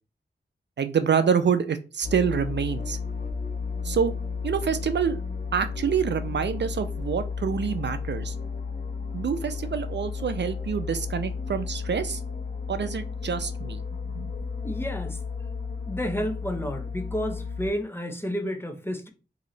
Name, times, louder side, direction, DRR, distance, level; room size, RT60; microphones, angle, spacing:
voice 1, 0.8-3.0 3.8-4.1 4.4-5.2 5.5-8.3 9.1-12.2 12.7-13.8 14.1-14.3, right 7 dB, 70° right, 0.4 m, -26 dB
sound 1, 2.0-17.7, left 5 dB, 50° left, 1.3 m, -33 dB
voice 2, 14.6-15.2 15.8-19.1, equal, 10° left, 0.7 m, -31 dB
3.1 x 2.7 x 3.9 m
wide cardioid pair, 60°, 19 cm